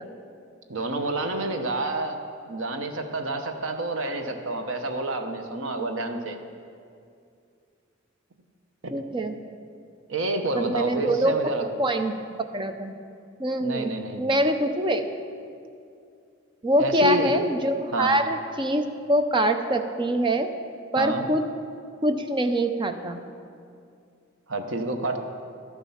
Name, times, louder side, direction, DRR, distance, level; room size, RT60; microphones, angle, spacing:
voice 1, 0.7-2.2 2.5-6.4 8.8-8.9 10.1-11.7 13.6-14.3 16.8-17.3 17.9-18.1 21.0-21.3 24.5-25.2, right 2 dB, 75° right, 6 dB, 0.9 m, -28 dB
voice 2, 8.9-9.4 10.6-11.3 11.8-12.1 12.5-12.9 13.4-15.1 16.6-18.8 19.1-20.5 20.9-21.4 22.0-23.2, right 1 dB, 25° right, 8 dB, 0.5 m, -24 dB
12.5 x 7.2 x 5.7 m, 2.4 s
head